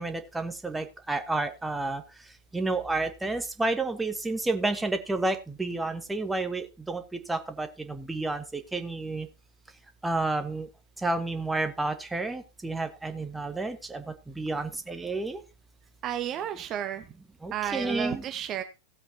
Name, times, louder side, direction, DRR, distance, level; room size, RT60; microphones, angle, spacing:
voice 1, 0.0-2.0 2.5-7.0 7.3-9.3 10.0-10.7 11.0-15.4 17.4-18.2, right 2 dB, 5° right, 7 dB, 1.4 m, -30 dB
voice 2, 16.0-17.1 17.5-18.6, right 10 dB, 30° right, 7 dB, 1.1 m, -32 dB
16.5 x 7.9 x 2.9 m, 0.29 s
figure-of-eight pair, 90°, 0 cm